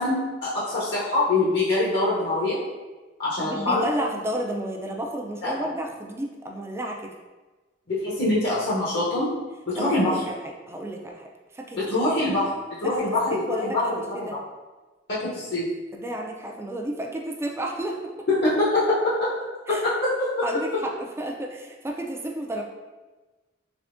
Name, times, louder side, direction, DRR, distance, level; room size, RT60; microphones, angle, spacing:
voice 1, 0.0-2.6 3.2-3.8 5.4-5.7 7.9-9.3 9.7-10.2 11.8-12.5 12.8-14.1 15.1-15.7 18.3-19.3 19.7-20.4, left 2 dB, 65° left, -8 dB, 0.8 m, -24 dB
voice 2, 3.4-7.1 9.7-11.2 11.5-12.1 12.8-13.0 13.3-13.9 14.3-14.4 15.9-18.3 19.7-19.8 20.4-22.6, right 1 dB, 15° right, 0 dB, 0.3 m, -32 dB
3.5 x 3.3 x 2.5 m, 1.2 s
head